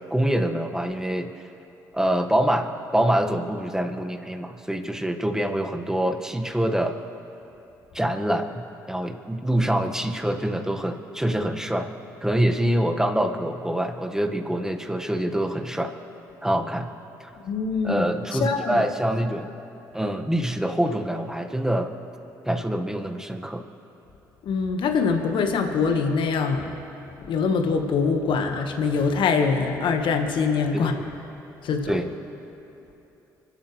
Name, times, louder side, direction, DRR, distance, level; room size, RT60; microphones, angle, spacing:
voice 1, 0.1-1.3 1.9-7.0 7.9-11.9 12.2-15.9 16.4-16.9 17.2-17.3 17.8-19.5 19.9-21.9 22.4-23.6 30.7-31.1 31.9-32.1, right 1 dB, 5° right, 4 dB, 1.7 m, -25 dB
voice 2, 17.4-18.7 24.4-26.7 27.2-31.0 31.6-31.9, left 5 dB, 60° left, 5 dB, 1.5 m, -24 dB
30.0 x 12.5 x 3.3 m, 2.9 s
hypercardioid pair, 45°, 9 cm